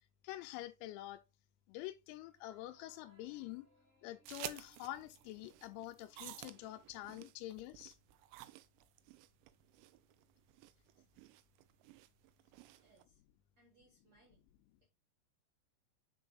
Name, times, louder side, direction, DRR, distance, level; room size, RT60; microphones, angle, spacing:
voice 1, 0.2-1.2 1.7-3.7 4.0-8.0, left 15 dB, 90° left, 3.5 m, -47 dB
sound 1, 2.2-7.0, right 1 dB, 5° left, 1.6 m, -72 dB
sound 2, 4.3-13.0, right 15 dB, 90° right, 2.6 m, -53 dB
voice 2, 12.8-13.2 13.6-14.5 14.8-14.9, right 2 dB, 55° right, 1.9 m, -69 dB
9.4 x 5.5 x 2.5 m
omnidirectional pair, 6.0 m